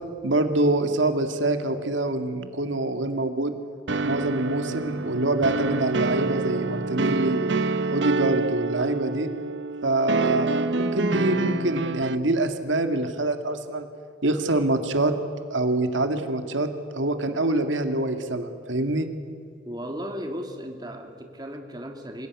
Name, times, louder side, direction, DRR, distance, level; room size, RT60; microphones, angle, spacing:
voice 1, 0.2-3.6 4.0-7.6 7.9-9.3 9.8-13.9 14.2-15.1 15.5-19.1, right 2 dB, 90° right, 7 dB, 2.0 m, -25 dB
sound 1, 3.9-12.2, right 3 dB, 75° right, 1.0 m, -27 dB
voice 2, 19.6-22.3, equal, 20° right, 4 dB, 2.3 m, -35 dB
27.0 x 16.5 x 9.6 m, 2.3 s
head